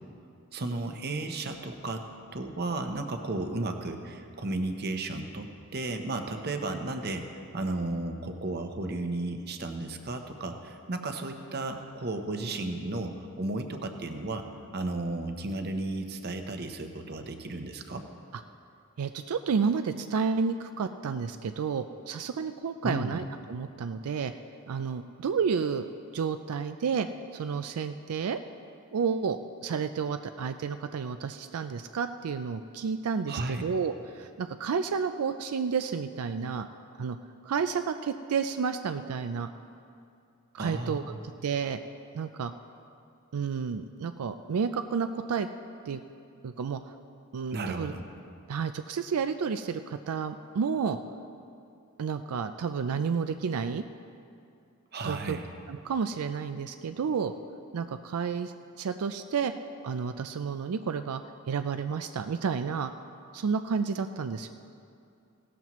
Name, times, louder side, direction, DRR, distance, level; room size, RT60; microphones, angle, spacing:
voice 1, 0.5-2.1 2.3-14.5 14.7-18.0 22.8-23.2 33.3-33.6 40.6-41.2 47.5-48.0 54.9-55.4, right 2 dB, 45° right, 6 dB, 0.8 m, -34 dB
voice 2, 19.0-23.2 23.5-24.3 24.7-25.9 26.1-27.1 27.3-28.4 28.9-36.7 37.0-37.2 37.4-39.5 40.5-41.0 41.4-41.8 42.1-42.5 43.3-45.5 45.9-46.0 46.4-46.9 47.3-47.9 48.5-51.0 52.0-53.8 55.0-55.4 55.7-57.3 57.7-59.5 59.8-61.2 61.5-62.9 63.3-64.5, right 6 dB, 85° right, 9 dB, 0.4 m, -31 dB
17.0 x 13.0 x 3.1 m, 2.5 s
head